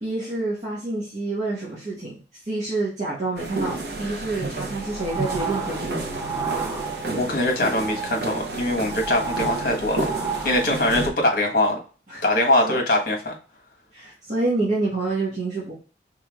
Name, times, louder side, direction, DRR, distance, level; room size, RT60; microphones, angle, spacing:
voice 1, 0.0-2.1 2.4-6.0 12.1-12.2 12.6-12.8 13.9-15.7, right 2 dB, 40° right, -8 dB, 1.4 m, -27 dB
sound 1, 3.4-11.1, right 2 dB, 60° right, 0.7 m, -31 dB
sound 2, 4.7-7.3 7.6-11.2, right 5 dB, 15° right, 0.4 m, -32 dB
voice 2, 7.1-10.0 10.4-11.8 12.2-13.4, left 1 dB, 50° left, 2 dB, 1.2 m, -22 dB
4.4 x 3.6 x 2.3 m, 0.37 s
head